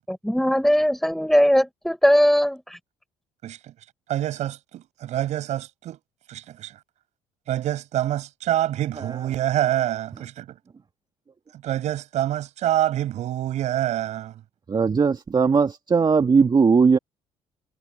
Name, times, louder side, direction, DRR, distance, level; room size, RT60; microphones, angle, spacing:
voice 1, 0.1-2.6, equal, ahead, 7.4 m, -19 dB
voice 2, 3.4-3.7 4.1-6.0 6.3-6.8 7.5-10.6 11.6-14.4, right 12 dB, 65° right, 7.8 m, -26 dB
voice 3, 14.7-17.0, right 5 dB, 35° right, 2.6 m, -19 dB
hypercardioid pair, 60°, 13 cm